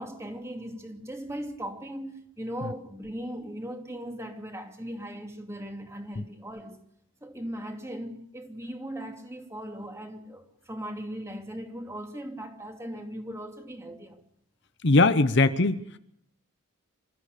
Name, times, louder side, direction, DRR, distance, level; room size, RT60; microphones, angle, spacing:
voice 1, 0.0-6.8 7.2-14.2, equal, 15° right, 2.7 m, -38 dB
voice 2, 14.8-16.0, left 3 dB, 50° left, 0.9 m, -21 dB
28.0 x 14.5 x 6.8 m
head